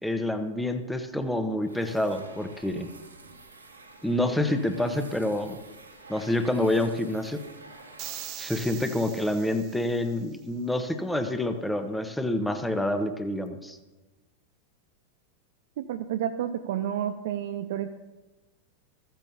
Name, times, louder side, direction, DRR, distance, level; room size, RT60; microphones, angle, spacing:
voice 1, 0.0-2.9 4.0-5.6 6.1-7.4 8.4-13.8, left 1 dB, 5° left, 7 dB, 1.1 m, -27 dB
sound 1, 1.6-8.7, right 3 dB, 75° right, 2.0 m, -49 dB
sound 2, 8.0-10.3, right 13 dB, 40° right, 0.9 m, -41 dB
voice 2, 15.8-17.9, right 10 dB, 55° right, 8 dB, 0.6 m, -30 dB
15.0 x 15.0 x 2.8 m, 1.2 s
figure-of-eight pair, 90°, 0 cm